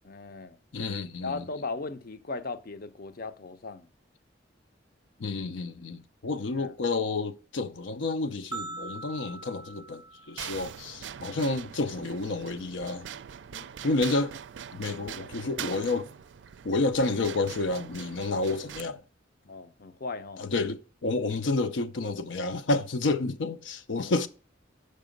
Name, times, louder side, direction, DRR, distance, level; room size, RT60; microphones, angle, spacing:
voice 1, 0.0-0.6 1.2-3.9 6.4-6.7 13.5-13.7 19.4-20.4 23.9-24.1, left 3 dB, 55° left, 0.6 m, -38 dB
voice 2, 0.7-1.5 5.2-13.1 13.8-14.4 14.7-16.1 16.6-19.0 20.4-24.3, left 3 dB, 85° left, 0.6 m, -30 dB
sound 1, 8.5-10.9, right 3 dB, 25° right, 0.6 m, -42 dB
sound 2, 10.4-18.8, right 9 dB, 75° right, 0.4 m, -42 dB
6.6 x 6.0 x 5.1 m
head